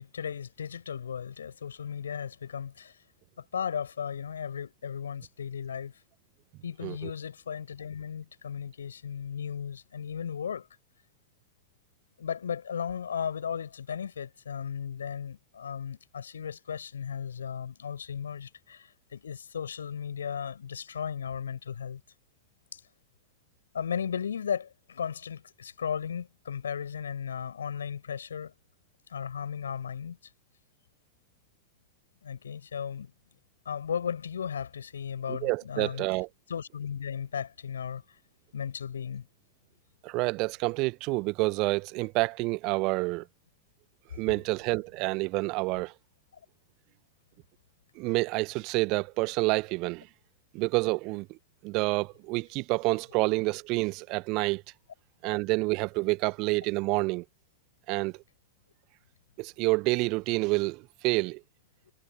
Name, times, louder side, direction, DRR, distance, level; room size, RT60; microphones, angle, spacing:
voice 1, 0.0-2.9 3.4-5.9 6.6-10.7 12.2-22.0 22.7-22.8 23.7-28.5 29.1-30.2 32.2-33.1 33.7-36.1 36.5-38.0 38.5-39.3, left 7 dB, 70° left, 5.6 m, -35 dB
voice 2, 35.3-36.3 40.0-43.3 44.1-45.9 47.9-50.1 50.5-51.4 51.6-54.6 55.2-57.2 57.9-58.1 59.4-61.4, right 25 dB, 40° right, 1.7 m, -28 dB
figure-of-eight pair, 90°, 0 cm